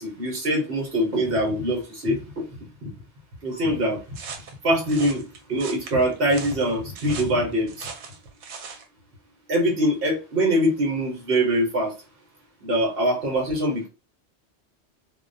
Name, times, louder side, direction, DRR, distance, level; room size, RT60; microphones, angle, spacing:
voice 1, 0.0-2.5 3.4-4.0 4.6-5.2 5.5-7.9 9.5-11.9 12.6-13.9, equal, 60° right, -1 dB, 1.0 m, -23 dB
sound 1, 4.1-8.9, right 5 dB, 85° right, 0.9 m, -39 dB
2.3 x 2.2 x 2.5 m, 0.31 s
omnidirectional pair, 1.2 m